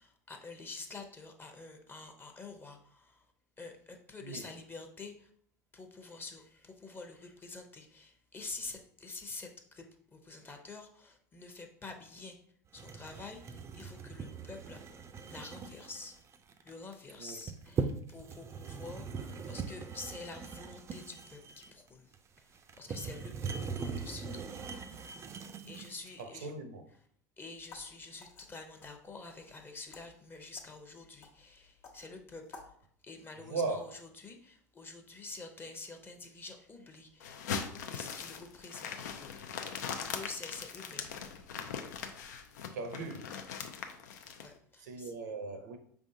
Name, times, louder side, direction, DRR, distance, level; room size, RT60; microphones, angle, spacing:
voice 1, 0.0-3.3 3.6-5.3 5.7-12.4 12.7-14.8 15.3-16.2 16.6-24.6 25.4-26.5 27.4-32.8 33.0-37.3 37.7-39.5 39.9-41.2 44.4-45.1, left 3 dB, 20° left, 0.8 m, -48 dB
sound 1, 12.7-26.1, right 5 dB, 30° right, 0.4 m, -41 dB
voice 2, 26.2-26.8 33.5-33.9 42.7-43.3 44.8-45.8, right 3 dB, 80° right, 0.7 m, -38 dB
sound 2, 27.6-32.8, left 4 dB, 65° left, 1.1 m, -56 dB
sound 3, 37.2-44.5, left 7 dB, 80° left, 0.5 m, -40 dB
4.9 x 3.5 x 2.7 m
hypercardioid pair, 90°, 9 cm